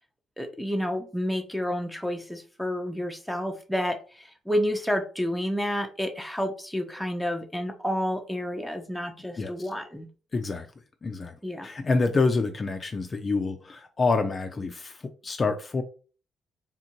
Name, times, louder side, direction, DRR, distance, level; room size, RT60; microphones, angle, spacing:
voice 1, 0.4-10.1 11.4-11.7, equal, ahead, 5 dB, 0.8 m, -30 dB
voice 2, 10.3-10.7 11.0-11.3 11.6-15.0 15.2-15.8, left 3 dB, 35° left, 6 dB, 0.5 m, -27 dB
3.7 x 2.6 x 4.4 m, 0.37 s
cardioid pair, 90°, 0 cm